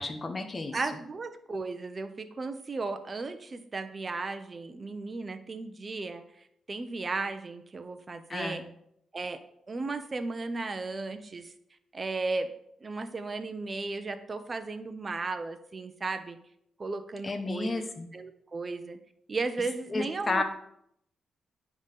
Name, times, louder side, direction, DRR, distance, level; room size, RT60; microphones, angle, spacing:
voice 1, 0.0-0.8 8.3-8.7 17.2-18.1 19.9-20.4, left 3 dB, 30° left, 6 dB, 1.1 m, -32 dB
voice 2, 0.7-8.6 9.1-9.4 9.7-11.5 11.9-12.5 12.8-16.4 16.8-17.7 18.1-19.0 19.3-20.4, right 3 dB, 35° right, 9 dB, 0.9 m, -35 dB
9.4 x 4.0 x 6.7 m, 0.72 s
cardioid pair, 90°, 0 cm